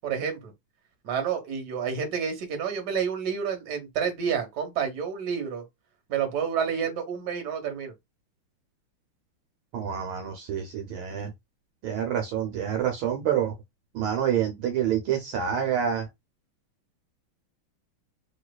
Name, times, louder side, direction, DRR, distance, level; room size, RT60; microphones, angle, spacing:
voice 1, 0.0-0.5 1.0-5.6 6.1-7.9, right 7 dB, 55° right, 1.5 m, -29 dB
voice 2, 9.7-11.3 11.8-13.5 13.9-16.1, right 9 dB, 70° right, 1.5 m, -27 dB
3.4 x 3.1 x 2.3 m
omnidirectional pair, 2.4 m